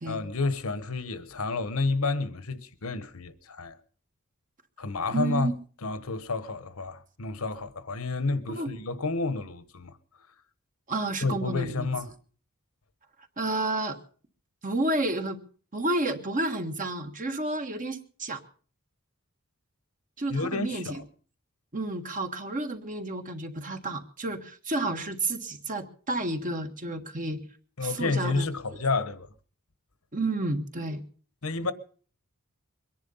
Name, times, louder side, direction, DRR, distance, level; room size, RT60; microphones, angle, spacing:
voice 1, 0.1-3.8 4.8-5.5 5.8-10.0 11.2-12.1 20.3-21.1 27.8-29.3 31.4-31.7, left 3 dB, 80° left, 1.2 m, -30 dB
voice 2, 5.1-5.5 8.6-8.7 10.9-11.9 13.4-14.0 14.6-15.4 15.7-18.4 20.2-21.0 21.7-27.4 27.8-28.5 30.1-31.0, right 2 dB, 40° right, 1.6 m, -30 dB
23.0 x 10.5 x 5.6 m
head